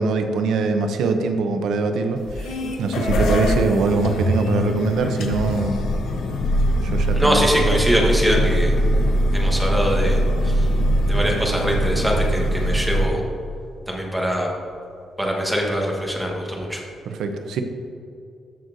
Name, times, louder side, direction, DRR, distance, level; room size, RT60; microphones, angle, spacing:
voice 1, 0.0-5.8 6.8-7.6 17.1-17.6, right 3 dB, 85° right, 6 dB, 0.7 m, -23 dB
sound 1, 2.2-13.0, equal, 90° left, 1.0 m, -22 dB
voice 2, 7.1-8.7 9.3-10.2 10.4-10.7 11.1-13.2 13.9-14.5 15.2-16.8, equal, 5° right, -2 dB, 1.3 m, -22 dB
13.5 x 6.3 x 2.7 m, 2.5 s
cardioid pair, 165°, 0 cm